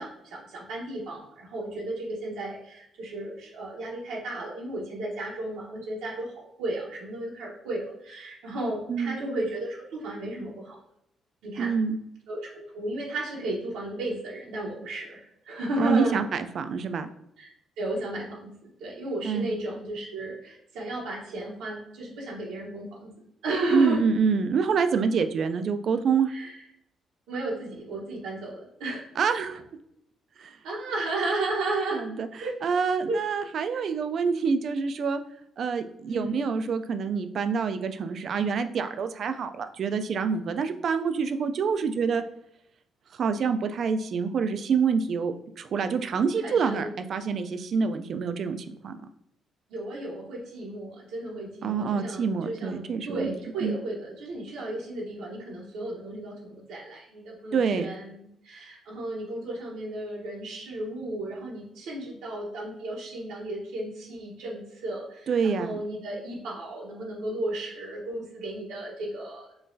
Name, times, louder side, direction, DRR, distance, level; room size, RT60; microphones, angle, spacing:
voice 1, 0.0-10.8 11.4-11.7 12.3-16.2 17.4-23.1 23.4-24.0 26.3-26.6 27.3-29.0 30.6-32.1 32.4-32.6 33.1-33.2 33.7-33.8 36.0-36.5 46.4-46.9 49.7-69.5, right 1 dB, 90° right, -3 dB, 0.9 m, -34 dB
voice 2, 11.6-12.0 15.8-17.1 19.2-19.5 23.7-26.3 29.2-29.6 30.4-30.6 31.9-32.3 32.6-35.2 35.6-42.2 43.2-48.9 51.6-53.3 53.6-53.8 57.5-57.9 65.3-65.8, right 5 dB, 60° right, 9 dB, 0.3 m, -26 dB
3.7 x 2.3 x 2.6 m, 0.78 s
cardioid pair, 90°, 0 cm